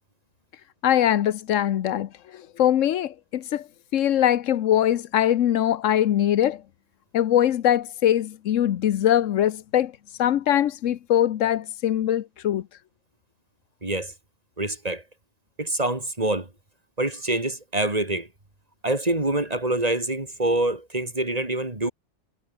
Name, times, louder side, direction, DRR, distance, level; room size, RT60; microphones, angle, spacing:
voice 1, 0.8-3.7 3.9-6.6 7.1-12.6, left 11 dB, 75° left, 1.1 m, -22 dB
voice 2, 13.8-14.1 14.6-15.0 15.6-16.5 17.0-18.3 18.8-21.9, right 2 dB, 30° right, 3.0 m, -25 dB
omnidirectional pair, 1.3 m